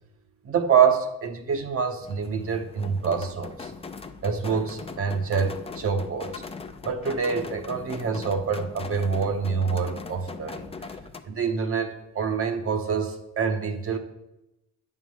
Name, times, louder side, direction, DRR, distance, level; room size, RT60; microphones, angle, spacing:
voice 1, 0.4-3.7 4.2-6.4 6.8-10.6 11.2-14.0, right 6 dB, 45° right, 5 dB, 0.9 m, -26 dB
sound 1, 2.0-11.2, left 4 dB, 20° left, 0.5 m, -40 dB
8.4 x 3.7 x 6.3 m, 0.91 s
cardioid pair, 90°, 30 cm